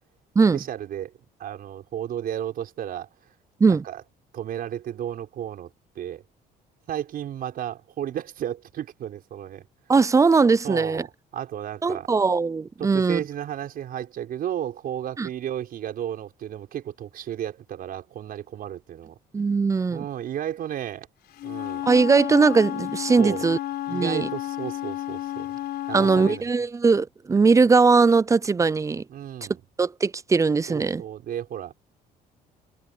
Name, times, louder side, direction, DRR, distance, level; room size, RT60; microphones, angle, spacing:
voice 1, 0.5-1.1 1.4-3.1 3.7-4.0 4.3-5.7 6.0-6.2 6.9-9.7 10.6-12.1 12.8-19.2 19.9-21.1 21.4-21.8 23.2-23.4 23.9-25.5 25.9-26.5 29.1-29.6 30.7-31.7, right 10 dB, 60° right, 5.5 m, -33 dB
voice 2, 9.9-11.0 11.8-13.2 15.2-15.3 19.3-20.0 21.9-23.6 23.9-24.3 25.9-29.0 29.8-31.0, right 4 dB, 20° right, 0.4 m, -20 dB
Wind instrument woodwind instrument, 21.3-26.4, left 14 dB, 75° left, 4.6 m, -32 dB
cardioid pair, 110°, 17 cm